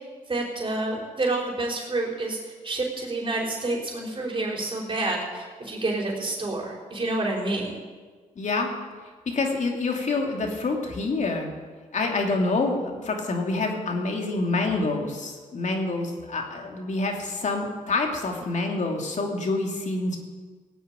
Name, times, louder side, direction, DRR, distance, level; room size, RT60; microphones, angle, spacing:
voice 1, 0.3-7.7, right 2 dB, 40° right, -1 dB, 5.1 m, -28 dB
voice 2, 8.4-8.7 9.3-11.5 11.9-20.2, left 3 dB, 60° left, 2 dB, 2.9 m, -27 dB
17.5 x 8.1 x 9.1 m, 1.5 s
cardioid pair, 70°, 14 cm